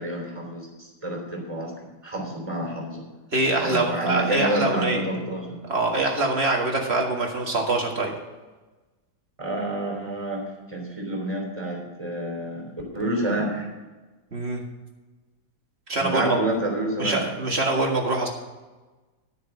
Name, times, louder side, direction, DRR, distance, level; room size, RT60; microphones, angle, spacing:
voice 1, 0.0-1.7 2.0-3.0 3.6-5.6 9.4-13.7 16.0-17.2, right 1 dB, 15° right, 0 dB, 3.3 m, -29 dB
voice 2, 3.3-5.3 5.7-8.1 14.3-14.6 15.9-16.4 17.0-18.3, right 2 dB, 30° right, 0 dB, 1.9 m, -24 dB
13.0 x 6.9 x 6.1 m, 1.2 s
omnidirectional pair, 2.3 m